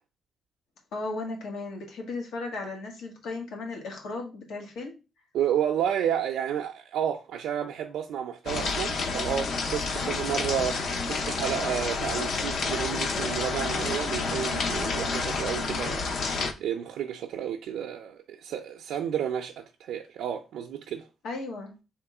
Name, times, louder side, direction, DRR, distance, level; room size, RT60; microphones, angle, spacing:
voice 1, 0.9-4.9 21.2-21.8, left 3 dB, 90° left, 1.5 m, -35 dB
voice 2, 5.3-16.0 16.3-21.1, right 9 dB, 85° right, 0.4 m, -31 dB
sound 1, 8.5-16.5, left 4 dB, 55° left, 0.6 m, -29 dB
3.5 x 3.0 x 4.7 m
cardioid pair, 175°, 0 cm